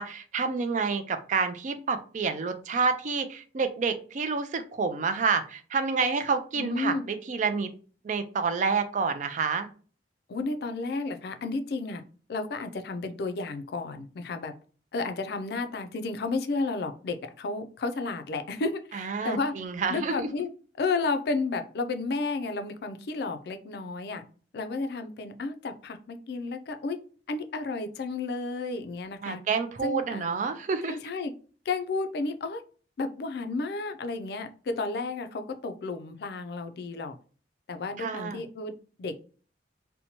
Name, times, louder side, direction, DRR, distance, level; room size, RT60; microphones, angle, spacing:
voice 1, 0.0-7.7 8.0-9.7 18.9-20.3 29.2-31.0 38.0-38.4, right 5 dB, 45° right, 9 dB, 0.3 m, -28 dB
voice 2, 6.5-7.0 10.3-12.0 12.3-14.5 14.9-19.5 19.9-20.5 20.8-24.2 24.5-27.0 27.3-29.4 29.8-30.3 30.8-31.3 31.7-32.6 33.0-37.2 37.7-38.7 39.0-39.1, left 3 dB, 60° left, 8 dB, 0.4 m, -32 dB
2.7 x 2.2 x 2.8 m, 0.40 s
head